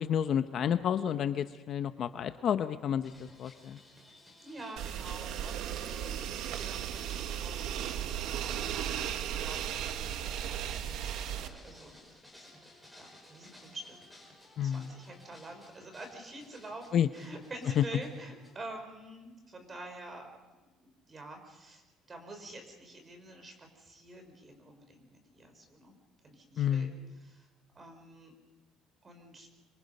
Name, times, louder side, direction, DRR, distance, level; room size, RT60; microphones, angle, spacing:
voice 1, 0.0-3.8 14.6-14.9 16.9-17.1 17.8-17.9 26.6-27.0, left 9 dB, 45° left, 10 dB, 0.7 m, -30 dB
sound 1, 3.0-18.5, left 1 dB, ahead, 5.4 m, -56 dB
voice 2, 4.4-12.7 13.0-14.0 14.6-20.4 20.6-26.0 26.2-27.5 27.7-28.3 29.0-29.5, right 2 dB, 20° right, 5 dB, 4.4 m, -48 dB
sound 2, 4.8-11.5, right 10 dB, 65° right, 1.1 m, -36 dB
26.5 x 23.5 x 5.5 m, 1.2 s
cardioid pair, 155°, 0 cm